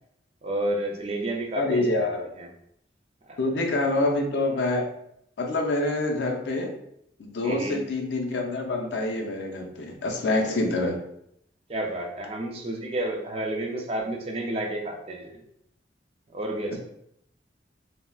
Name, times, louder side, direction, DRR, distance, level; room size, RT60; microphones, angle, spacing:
voice 1, 0.4-2.1 2.3-2.5 3.3-3.4 3.8-3.9 7.4-7.8 10.4-10.6 11.7-15.4 16.3-16.8, right 1 dB, 35° right, 1 dB, 0.4 m, -31 dB
voice 2, 1.6-2.2 3.4-4.8 5.4-6.7 7.2-11.0, left 2 dB, 75° left, 3 dB, 0.5 m, -26 dB
3.5 x 2.0 x 2.3 m, 0.75 s
head